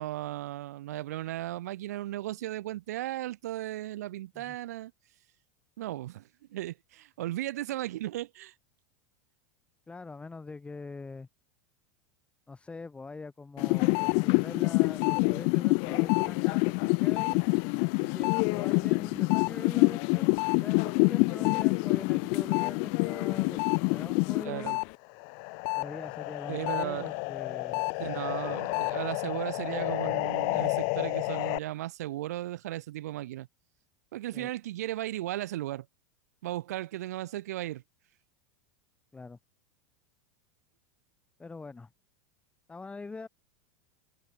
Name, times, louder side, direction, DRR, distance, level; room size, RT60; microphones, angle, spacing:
voice 1, 0.0-4.9 5.8-8.5 24.4-24.8 26.5-27.1 28.0-33.5 34.1-35.9 36.4-37.8, right 15 dB, 75° right, 0.9 m, -36 dB
voice 2, 9.9-11.3 12.5-17.4 18.0-24.8 25.7-27.9 29.3-29.4 34.3-34.5 39.1-39.4 41.4-41.9 42.7-43.3, left 3 dB, 15° left, 2.7 m, -43 dB
sound 1, 13.6-24.9 25.2-31.6, left 40 dB or more, 55° left, 0.6 m, -27 dB
hypercardioid pair, 110°, 9 cm